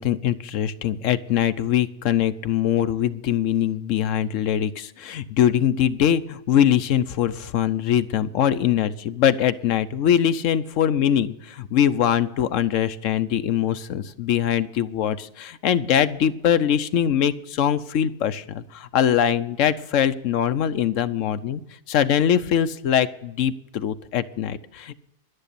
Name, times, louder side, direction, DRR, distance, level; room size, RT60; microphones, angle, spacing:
voice 1, 0.0-21.6 21.9-24.9, left 9 dB, 85° left, 12 dB, 1.1 m, -22 dB
11.5 x 9.9 x 6.8 m, 0.81 s
omnidirectional pair, 1.3 m